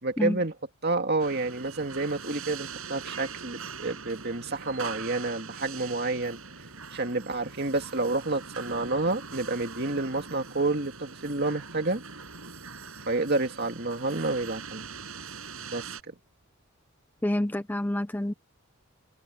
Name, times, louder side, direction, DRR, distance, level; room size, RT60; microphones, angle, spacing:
voice 1, 0.0-0.5 0.8-6.4 6.9-12.0 13.1-14.8 15.7-16.1, right 2 dB, 45° right, 2.3 m, -29 dB
sound 1, 1.2-16.0, right 5 dB, 70° right, 6.4 m, -42 dB
voice 2, 17.2-18.3, left 1 dB, 10° left, 0.4 m, -28 dB
head